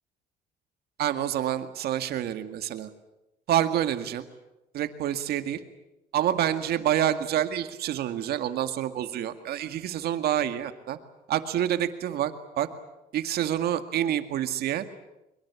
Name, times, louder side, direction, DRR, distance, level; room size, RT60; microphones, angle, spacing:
voice 1, 1.0-2.9 3.5-4.3 4.7-5.6 6.1-11.0 11.3-12.7 13.1-14.8, right 11 dB, 70° right, 9 dB, 2.1 m, -27 dB
23.5 x 23.0 x 8.4 m, 0.93 s
cardioid pair, 110°, 17 cm